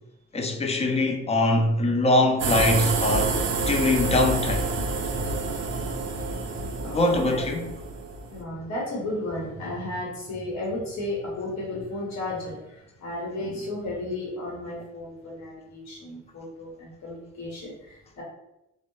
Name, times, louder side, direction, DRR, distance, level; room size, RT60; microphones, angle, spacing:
voice 1, 0.3-4.7 6.8-7.7, left 2 dB, 20° left, 0.4 m, -23 dB
sound 1, 2.4-8.4, right 3 dB, 40° right, 0.4 m, -28 dB
voice 2, 6.2-7.4 8.3-18.2, left 1 dB, 60° left, 0.8 m, -34 dB
2.2 x 2.0 x 3.0 m
cardioid pair, 90°, 30 cm